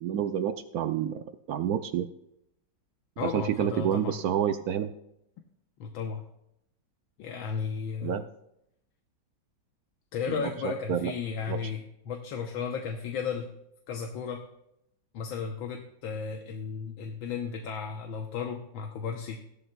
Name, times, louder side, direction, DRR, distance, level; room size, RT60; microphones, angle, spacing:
voice 1, 0.0-2.1 3.2-4.9 8.0-8.3 10.3-11.1 11.5-11.6, right 9 dB, 75° right, 9 dB, 0.8 m, -29 dB
voice 2, 3.2-4.2 5.8-6.2 7.2-8.2 10.1-13.5 13.9-14.4 15.1-19.4, left 6 dB, 80° left, 3 dB, 1.7 m, -34 dB
16.5 x 12.0 x 2.3 m, 0.79 s
omnidirectional pair, 2.2 m